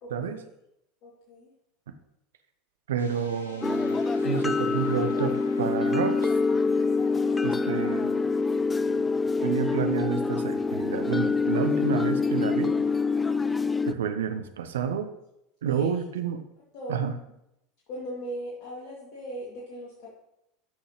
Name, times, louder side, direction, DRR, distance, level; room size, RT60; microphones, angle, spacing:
voice 1, 0.0-0.4 1.0-1.5 15.6-15.9 16.7-17.1 17.9-20.2, equal, 55° left, -5 dB, 2.4 m, -38 dB
voice 2, 2.9-4.0 4.2-6.3 7.4-8.2 9.4-12.7 13.9-15.1 15.6-16.4 16.9-17.1, right 7 dB, 70° right, 8 dB, 0.8 m, -29 dB
sound 1, 3.0-12.8, left 1 dB, 80° left, 1.3 m, -48 dB
sound 2, 3.6-13.9, left 4 dB, 15° left, 0.4 m, -26 dB
13.0 x 6.3 x 3.1 m, 0.83 s
figure-of-eight pair, 75°, 0 cm